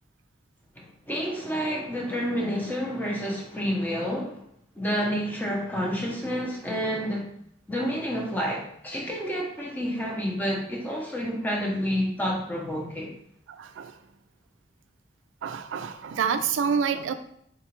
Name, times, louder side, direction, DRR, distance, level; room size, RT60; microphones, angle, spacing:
voice 1, 0.7-4.5 4.7-7.3 7.7-13.1, equal, 10° left, -2 dB, 0.6 m, -29 dB
voice 2, 13.5-13.9 15.4-17.1, right 6 dB, 80° right, 9 dB, 0.3 m, -27 dB
3.8 x 2.4 x 2.9 m, 0.71 s
head